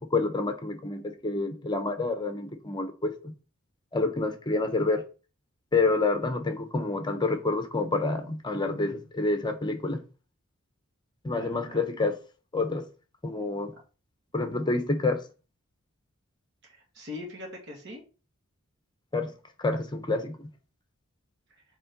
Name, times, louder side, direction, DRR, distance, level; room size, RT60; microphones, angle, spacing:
voice 1, 0.0-3.1 3.9-5.0 5.7-10.0 11.2-12.2 12.5-12.9 13.2-13.7 14.3-15.2 19.1-19.3 19.6-20.4, left 3 dB, 20° left, 0.9 m, -28 dB
voice 2, 11.3-11.8 16.6-18.0 21.5-21.6, left 2 dB, 60° right, 2.3 m, -42 dB
5.4 x 3.8 x 5.2 m
head